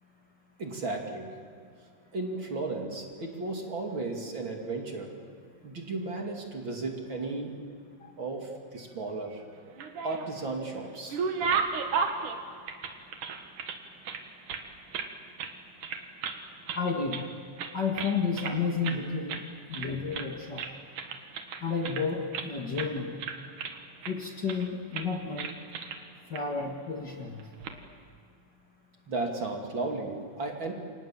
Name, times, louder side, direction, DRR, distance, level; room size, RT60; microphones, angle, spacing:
voice 1, 0.6-1.4 2.1-5.2 5.6-7.6 8.2-9.5 10.0-11.2 29.1-30.7, right 3 dB, 40° right, 2 dB, 3.2 m, -34 dB
sound 1, 9.6-10.5 10.8-13.8 14.0-15.1 15.4-15.6 15.8-16.4 16.7-17.3 17.6-18.6 18.8-19.0 19.3-19.5 19.7-20.3 20.6-22.5 22.8-22.9 23.2-24.1 24.5-24.7 24.9-25.1 25.4-26.0 26.3-26.4 27.4-27.7, right 5 dB, 80° right, 3.2 m, -34 dB
voice 2, 16.8-17.3 17.7-19.4 19.7-20.7 21.6-23.1 24.1-25.5 26.3-27.4, left 5 dB, 40° left, 1 dB, 2.2 m, -31 dB
29.0 x 26.5 x 7.5 m, 2.3 s
omnidirectional pair, 3.5 m